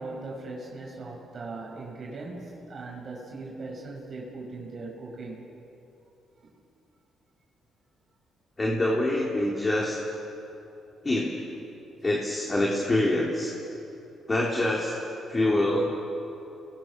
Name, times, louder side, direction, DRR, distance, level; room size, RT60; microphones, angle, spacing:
voice 1, 0.0-5.5, right 3 dB, 45° right, -1 dB, 5.8 m, -39 dB
voice 2, 8.6-10.0 11.0-11.3 12.0-13.5 14.3-14.9 15.3-15.9, left 1 dB, 25° left, -3 dB, 3.7 m, -25 dB
30.0 x 22.0 x 6.3 m, 2.9 s
cardioid pair, 90°, 0 cm